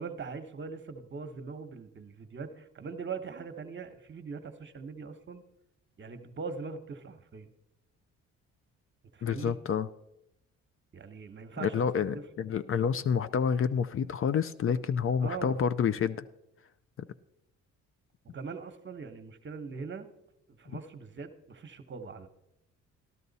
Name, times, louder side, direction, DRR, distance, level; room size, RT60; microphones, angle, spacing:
voice 1, 0.0-5.4 6.0-7.5 9.1-9.6 10.9-12.2 15.2-15.6 18.3-20.1 20.5-22.3, right 5 dB, 40° right, 8 dB, 1.1 m, -41 dB
voice 2, 9.2-9.9 11.6-16.2, left 7 dB, 45° left, 13 dB, 0.5 m, -28 dB
12.5 x 12.5 x 4.1 m, 0.85 s
cardioid pair, 90°, 30 cm